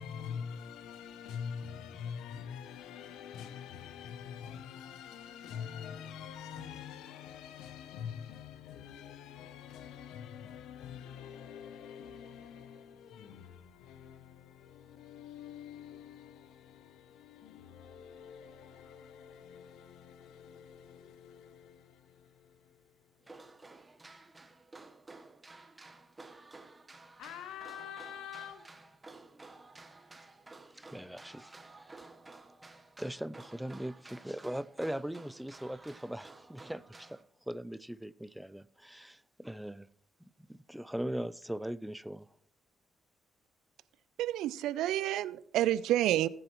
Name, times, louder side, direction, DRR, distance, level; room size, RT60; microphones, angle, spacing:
voice 1, 0.0-23.4 27.2-28.7, left 7 dB, 90° left, 0.7 m, -46 dB
sound 1, 23.2-37.2, right 3 dB, 20° right, 1.1 m, -53 dB
voice 2, 30.7-32.1 33.0-37.2 37.5-39.9 40.2-42.3, right 1 dB, 5° right, 0.4 m, -40 dB
voice 3, 44.2-46.3, right 13 dB, 90° right, 0.4 m, -29 dB
18.0 x 7.8 x 3.1 m
cardioid pair, 90°, 0 cm